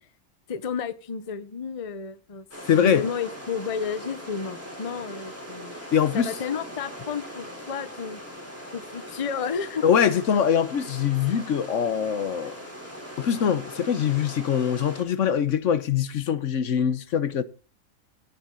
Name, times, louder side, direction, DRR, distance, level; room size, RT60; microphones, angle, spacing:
voice 1, 0.5-2.5 2.7-5.8 6.1-8.2 8.7-9.9, left 6 dB, 30° left, 0.7 m, -32 dB
sound 1, 2.5-15.0, equal, 10° right, 3.5 m, -40 dB
voice 2, 2.7-3.0 5.9-6.3 9.8-12.6 13.2-17.4, left 8 dB, 65° left, 1.1 m, -23 dB
17.0 x 7.2 x 3.8 m
omnidirectional pair, 1.5 m